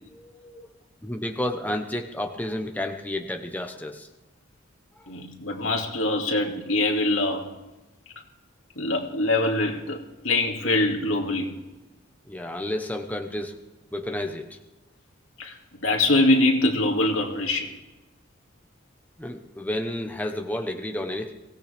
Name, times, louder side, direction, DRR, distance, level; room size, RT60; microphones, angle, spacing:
voice 1, 0.1-0.6 1.0-4.1 5.0-5.1 12.2-13.6 13.9-14.6 19.2-21.3, left 1 dB, 10° left, 4 dB, 1.1 m, -31 dB
voice 2, 5.1-7.5 8.8-10.0 10.2-11.5 15.4-17.7, left 2 dB, 80° left, 1 dB, 2.5 m, -23 dB
23.5 x 17.0 x 3.5 m, 1.1 s
head